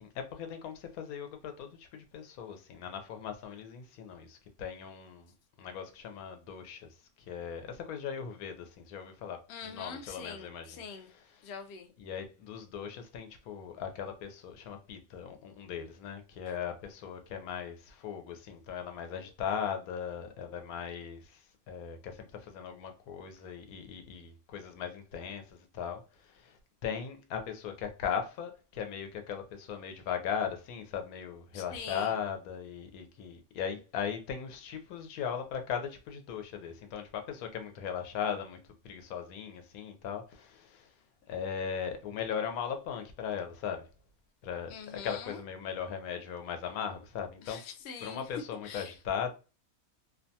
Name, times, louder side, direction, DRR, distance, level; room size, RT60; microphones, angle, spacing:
voice 1, 0.0-5.3 5.6-6.9 7.3-10.7 12.0-26.6 26.8-40.9 41.3-43.9 44.4-44.7 45.0-47.6 48.0-49.3, left 7 dB, 80° left, 1.0 m, -38 dB
voice 2, 9.5-11.1 11.4-11.9 31.5-32.2 44.7-45.4 47.4-48.3 48.6-49.0, left 6 dB, 65° left, 0.6 m, -44 dB
2.6 x 2.2 x 2.6 m
omnidirectional pair, 1.5 m